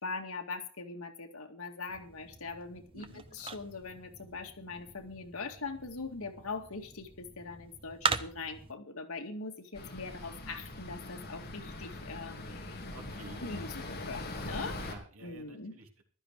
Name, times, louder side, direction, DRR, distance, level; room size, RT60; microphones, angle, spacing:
voice 1, 0.0-12.8 13.4-14.9 15.2-15.7, left 3 dB, 85° left, 4 dB, 2.1 m, -42 dB
sound 1, 1.9-8.7, right 5 dB, 25° right, 0.8 m, -40 dB
voice 2, 2.9-3.2 12.9-13.6 14.8-16.0, right 2 dB, 85° right, 2 dB, 3.4 m, -51 dB
sound 2, 9.8-15.0, left 2 dB, 45° left, 3.0 m, -42 dB
14.5 x 12.0 x 4.7 m, 0.42 s
head